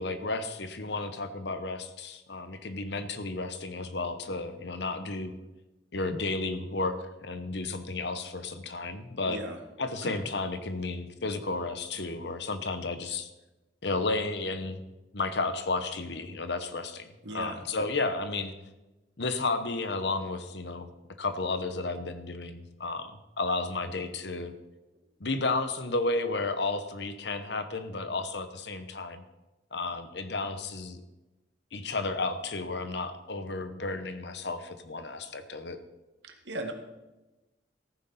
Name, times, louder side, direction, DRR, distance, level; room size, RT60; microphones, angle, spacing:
voice 1, 0.0-5.3 5.9-7.0 7.2-9.4 9.8-13.3 13.8-14.8 15.1-18.5 19.2-20.9 21.2-24.5 25.2-29.2 29.7-31.0 31.7-35.8, left 3 dB, 70° left, 10 dB, 1.0 m, -32 dB
voice 2, 9.3-9.6 10.0-10.2 17.2-17.6 36.2-36.7, right 1 dB, 75° right, 4 dB, 1.8 m, -37 dB
14.5 x 9.8 x 4.2 m, 1.0 s
head